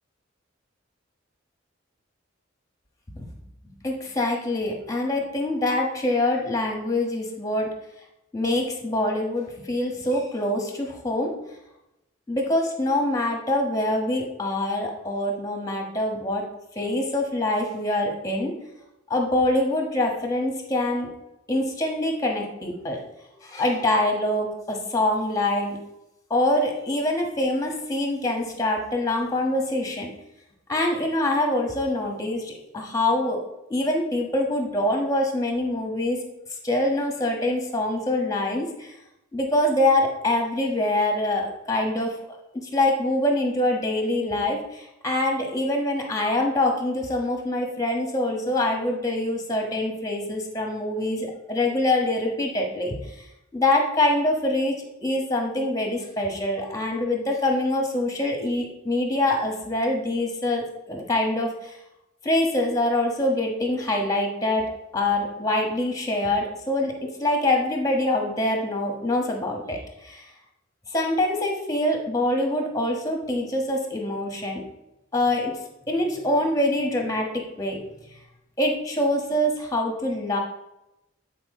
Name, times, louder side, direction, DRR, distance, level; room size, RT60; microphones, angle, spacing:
voice 1, 3.8-7.7 8.3-11.3 12.3-16.5 16.7-18.5 19.1-21.1 21.5-23.0 23.4-25.8 26.3-30.1 30.7-33.4 33.7-36.2 36.6-38.9 39.3-42.1 42.6-53.2 53.5-54.7 55.0-61.8 62.2-70.3 70.9-74.6 75.1-75.5 75.9-77.3 77.6-77.8 78.6-80.4, left 1 dB, 15° left, 1 dB, 1.3 m, -25 dB
8.6 x 4.7 x 3.7 m, 0.89 s
head